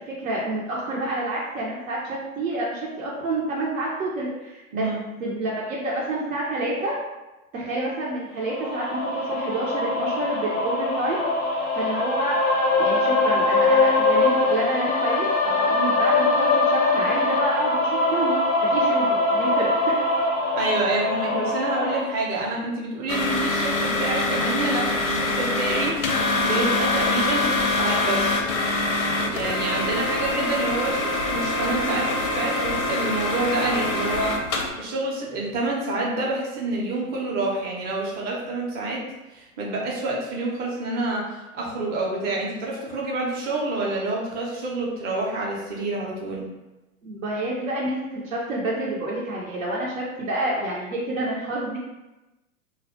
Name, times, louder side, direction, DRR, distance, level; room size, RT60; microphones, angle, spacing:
voice 1, 0.0-4.9 5.2-7.0 7.5-11.2 11.7-12.4 12.8-20.0 47.0-51.8, right 2 dB, 80° right, -5 dB, 0.7 m, -28 dB
sound 1, 8.4-22.0, left 2 dB, 30° left, 0.4 m, -22 dB
voice 2, 20.6-28.5 29.3-34.3 34.8-39.0 39.3-46.5, right 2 dB, 25° right, -3 dB, 0.5 m, -28 dB
sound 2, 23.1-34.7, left 2 dB, 85° left, 0.6 m, -24 dB
2.3 x 2.1 x 2.6 m, 1.0 s
hypercardioid pair, 110°, 42 cm